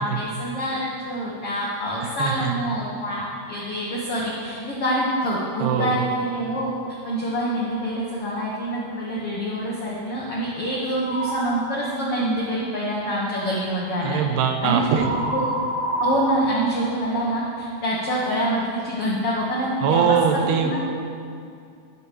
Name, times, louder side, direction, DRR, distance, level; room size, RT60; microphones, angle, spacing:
voice 1, 0.0-6.7 7.0-14.2 14.6-15.0 15.3-15.4 16.0-20.8, equal, 75° left, -5 dB, 1.3 m, -26 dB
voice 2, 2.0-2.5 5.6-6.0 14.0-15.1 19.8-20.8, right 7 dB, 85° right, 5 dB, 2.9 m, -22 dB
sound 1, 11.0-11.6 14.9-17.6, right 1 dB, 55° left, 0.6 m, -27 dB
11.5 x 6.9 x 6.8 m, 2.4 s
omnidirectional pair, 4.7 m